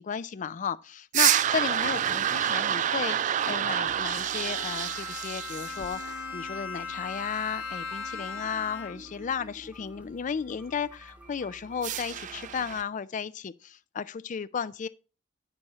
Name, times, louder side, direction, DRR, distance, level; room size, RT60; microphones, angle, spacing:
voice 1, 0.0-14.9, left 6 dB, 40° left, 0.4 m, -34 dB
sound 1, 1.1-6.1 11.8-12.8, right 10 dB, 40° right, 0.3 m, -28 dB
sound 2, 3.8-12.8, equal, 5° right, 0.9 m, -51 dB
Bowed string instrument, 4.2-9.2, left 4 dB, 85° left, 1.3 m, -38 dB
9.8 x 4.2 x 4.7 m
head